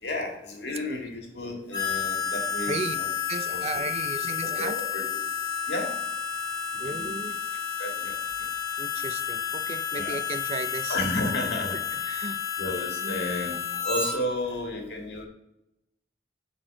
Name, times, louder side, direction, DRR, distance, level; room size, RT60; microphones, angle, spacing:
voice 1, 0.0-3.1 3.5-3.7 4.4-5.1 5.7-5.9 6.8-7.1 7.8-8.2 9.9-10.2 10.9-12.2 12.6-13.6 13.8-15.3, left 2 dB, 75° left, 1.8 m, -32 dB
Harmonica, 1.7-14.1, left 7 dB, 25° left, 2.5 m, -31 dB
voice 2, 3.3-4.8 6.8-7.4 8.8-11.0 11.9-12.4 13.0-13.2, right 3 dB, 35° right, 0.4 m, -35 dB
8.7 x 4.1 x 3.8 m
head